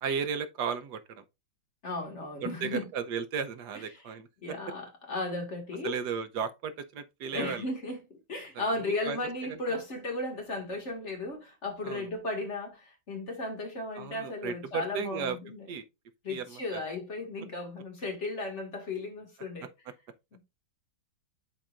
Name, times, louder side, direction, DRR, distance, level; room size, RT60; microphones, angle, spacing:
voice 1, 0.0-1.2 2.4-4.3 5.8-7.6 8.5-9.2 9.5-9.6 11.8-12.1 14.0-15.4 15.7-15.8 16.3-16.8, right 6 dB, 75° right, 1.3 m, -35 dB
voice 2, 1.8-2.9 3.7-4.0 4.4-6.0 7.3-15.7 16.2-19.7, left 2 dB, 40° left, 2.2 m, -35 dB
10.0 x 4.4 x 2.5 m
omnidirectional pair, 1.9 m